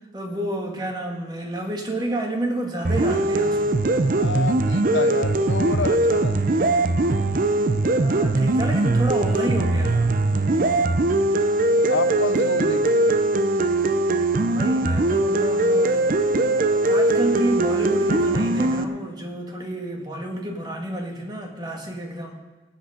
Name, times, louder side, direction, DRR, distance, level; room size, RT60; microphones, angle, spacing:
voice 1, 0.1-3.9 8.0-10.1 14.5-16.1 16.9-22.3, right 1 dB, 25° right, 2 dB, 1.7 m, -29 dB
sound 1, 2.8-18.8, right 2 dB, 50° right, 0.6 m, -21 dB
voice 2, 4.1-6.4 10.5-11.0 11.8-13.2, left 4 dB, 85° left, 11 dB, 0.8 m, -30 dB
18.0 x 8.7 x 5.0 m, 1.2 s
head